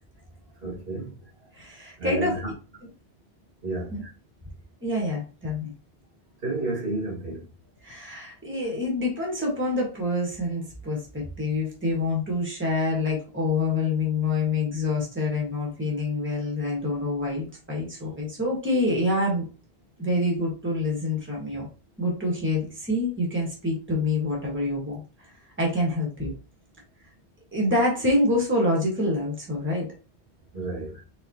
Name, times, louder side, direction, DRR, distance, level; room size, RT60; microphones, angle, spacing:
voice 1, 0.6-1.1 2.0-2.5 3.6-3.9 6.4-7.4 30.5-31.0, right 2 dB, 65° right, 2.1 m, -31 dB
voice 2, 1.5-2.4 3.9-4.1 4.8-5.7 7.8-19.5 20.0-21.7 22.0-25.0 25.6-26.3 27.5-29.9, left 2 dB, 10° right, 1.6 m, -26 dB
4.1 x 3.8 x 2.8 m
omnidirectional pair, 1.0 m